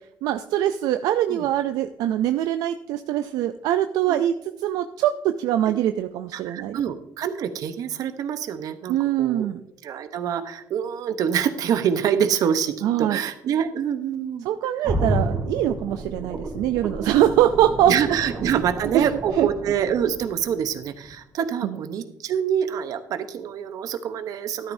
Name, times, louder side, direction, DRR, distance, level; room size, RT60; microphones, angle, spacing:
voice 1, 0.2-6.8 8.9-9.6 12.8-13.2 14.4-18.2 18.9-19.1 19.3-19.5 21.6-21.8, right 12 dB, 85° right, 9 dB, 0.4 m, -23 dB
voice 2, 6.3-9.5 9.8-14.5 17.9-24.7, right 8 dB, 70° right, 10 dB, 0.9 m, -26 dB
sound 1, 14.8-20.7 21.0-21.1, right 1 dB, 50° right, 2.9 m, -30 dB
12.0 x 10.5 x 2.7 m, 0.80 s
cardioid pair, 95°, 6 cm